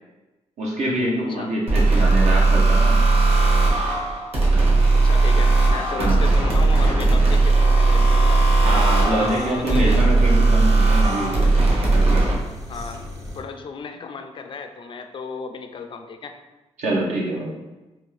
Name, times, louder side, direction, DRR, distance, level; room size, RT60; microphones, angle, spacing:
voice 1, 0.6-3.0 6.0-6.3 8.6-11.4 11.9-12.2 16.8-17.5, right 1 dB, 70° right, -3 dB, 0.8 m, -25 dB
sound 1, 1.7-12.4, right 3 dB, 55° right, 1.3 m, -17 dB
voice 2, 4.9-8.5 9.1-10.0 12.7-13.0 13.4-16.3, left 5 dB, 45° left, 6 dB, 0.4 m, -35 dB
sound 2, 8.0-13.4, left 1 dB, 25° right, 0.7 m, -35 dB
3.4 x 2.3 x 3.2 m, 1.1 s
cardioid pair, 75°, 12 cm